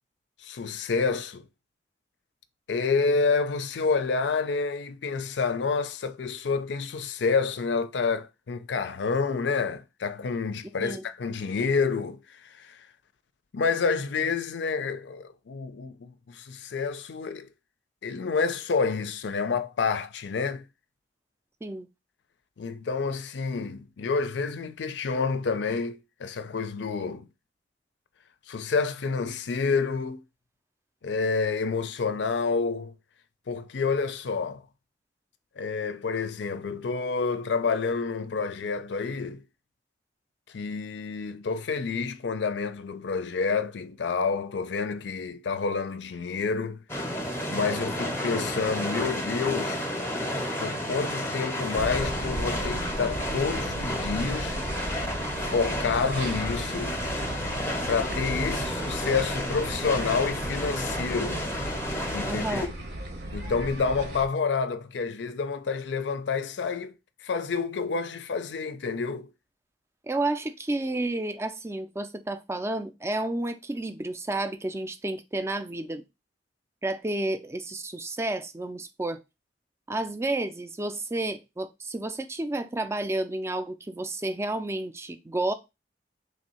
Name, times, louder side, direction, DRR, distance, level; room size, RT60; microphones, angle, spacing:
voice 1, 0.4-1.5 2.7-12.8 13.5-17.5 18.0-20.7 22.6-27.3 28.5-30.2 31.0-32.9 33.5-34.6 35.6-39.4 40.5-46.8 47.5-49.9 50.6-54.6 55.4-57.0 57.9-61.4 62.1-62.7 63.3-66.9 67.2-69.3, left 4 dB, 75° left, 0.5 m, -28 dB
sound 1, 46.9-62.7, equal, 15° left, 0.7 m, -31 dB
sound 2, 51.8-64.3, right 1 dB, 65° right, 0.8 m, -36 dB
voice 2, 62.3-62.7 70.0-76.0 76.8-79.2 79.9-85.5, right 2 dB, 15° right, 0.4 m, -31 dB
3.3 x 2.7 x 4.3 m
head